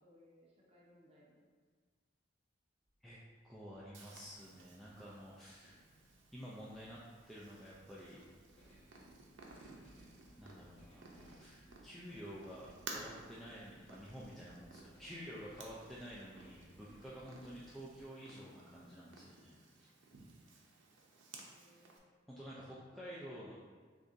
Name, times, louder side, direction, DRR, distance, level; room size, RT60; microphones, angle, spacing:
voice 1, 0.0-1.5 21.4-22.3 22.7-23.6, left 1 dB, 35° right, -4 dB, 0.8 m, -65 dB
sound 1, 2.8-18.0, equal, 30° left, 1.0 m, -65 dB
voice 2, 3.4-5.8 6.3-7.0 7.3-8.2 10.4-19.5 19.8-19.9 22.3-23.6, equal, ahead, -8 dB, 0.4 m, -50 dB
Purr, 3.9-22.0, right 3 dB, 80° right, 0.6 m, -56 dB
6.5 x 2.5 x 2.6 m, 1.5 s
head